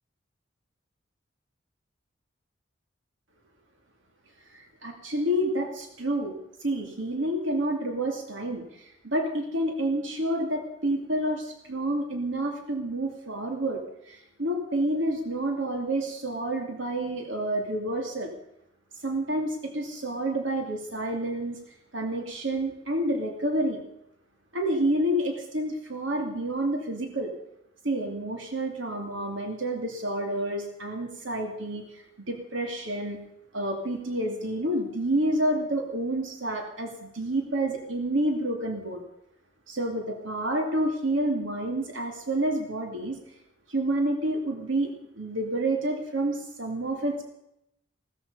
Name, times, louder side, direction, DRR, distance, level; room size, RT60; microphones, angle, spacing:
voice 1, 4.5-6.3 6.6-18.3 19.0-21.6 21.9-23.8 24.5-27.3 27.8-33.2 33.5-39.0 39.7-43.2 43.7-44.9 45.1-47.3, right 1 dB, 70° right, 3 dB, 2.5 m, -29 dB
18.0 x 14.0 x 5.5 m, 0.78 s
head